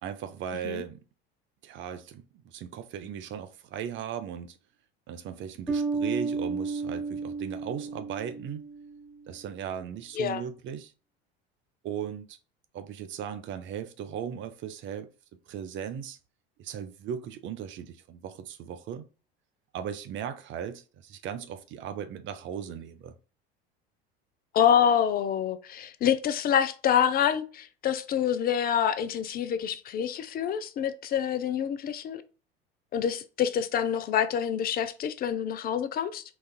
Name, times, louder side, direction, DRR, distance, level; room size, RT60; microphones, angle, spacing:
voice 1, 0.0-1.0 1.6-4.6 5.1-8.7 9.3-10.9 11.8-12.4 12.7-15.1 15.5-16.2 16.6-19.1 19.7-23.1, right 8 dB, 40° right, 0.5 m, -37 dB
Bass guitar, 5.7-9.2, right 4 dB, 5° left, 0.9 m, -32 dB
voice 2, 24.5-32.2 32.9-36.2, left 9 dB, 30° left, 0.4 m, -26 dB
4.0 x 2.3 x 2.3 m
hypercardioid pair, 75°, 31 cm